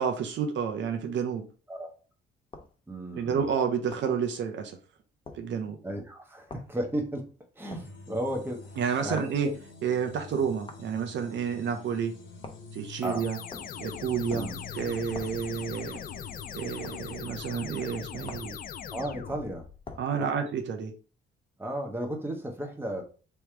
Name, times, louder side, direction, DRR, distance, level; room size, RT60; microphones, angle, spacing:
voice 1, 0.0-1.4 3.2-4.8 5.3-5.8 8.8-9.5 9.8-12.1 12.7-13.4 13.8-14.5 14.7-16.0 16.5-18.6 20.0-20.9, right 7 dB, 70° right, 0.8 m, -30 dB
sound 1, 2.5-2.7 3.9-4.1 5.3-5.4 6.5-6.7 7.7-7.9 9.2-9.4 10.7-10.9 12.4-12.7 13.5-13.8 14.3-14.6 15.1-15.4 16.8-17.0 18.3-18.6 19.8-20.1, left 3 dB, 25° left, 0.8 m, -44 dB
voice 2, 2.9-3.5 5.8-9.6 13.0-13.3 14.3-14.6 18.9-19.7 20.2-20.5 21.6-23.0, right 1 dB, 10° right, 1.2 m, -34 dB
sound 2, 7.7-17.2, left 4 dB, 75° left, 1.6 m, -47 dB
sound 3, 13.0-19.8, left 8 dB, 45° left, 0.4 m, -41 dB
3.5 x 3.1 x 4.5 m
cardioid pair, 90°, 20 cm